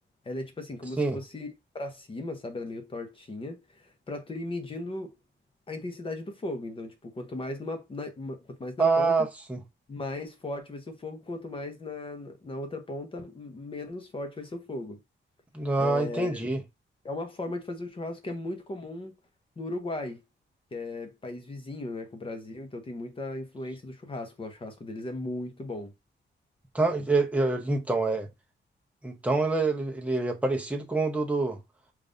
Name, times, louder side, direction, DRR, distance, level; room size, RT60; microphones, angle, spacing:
voice 1, 0.2-1.5 1.7-5.1 5.7-9.1 9.9-15.0 15.8-16.5 17.0-19.1 19.6-20.2 20.7-25.9, left 2 dB, 25° left, 0.8 m, -37 dB
voice 2, 8.8-9.6 15.5-16.6 26.7-28.3 29.0-31.6, right 3 dB, 5° right, 0.8 m, -26 dB
5.2 x 2.5 x 2.6 m
wide cardioid pair, 175°, 20 cm